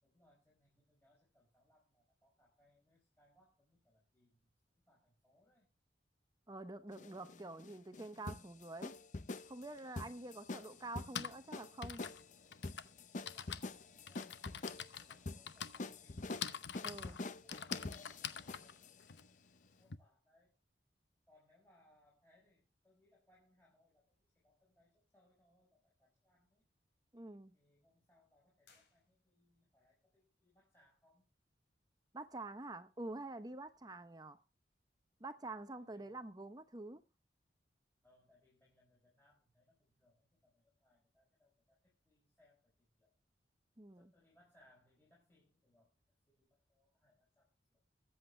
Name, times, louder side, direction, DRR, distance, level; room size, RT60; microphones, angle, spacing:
voice 1, 0.0-5.7 7.0-7.6 13.2-16.4 16.9-18.8 19.1-20.5 21.3-26.6 27.5-31.3 35.7-36.2 38.0-43.1 44.0-47.8, left 1 dB, 15° left, 4.7 m, -73 dB
voice 2, 6.5-9.0 9.4-12.0 16.8-17.2 27.1-27.6 32.1-34.4 35.2-37.0 43.8-44.1, right 2 dB, 20° right, 0.8 m, -47 dB
sound 1, 6.9-18.9, left 3 dB, 45° left, 0.7 m, -46 dB
Typing, 9.8-9.9 10.8-20.0, left 8 dB, 85° left, 0.9 m, -46 dB
sound 2, 28.6-29.7, left 5 dB, 65° left, 4.7 m, -71 dB
22.5 x 8.1 x 3.3 m
head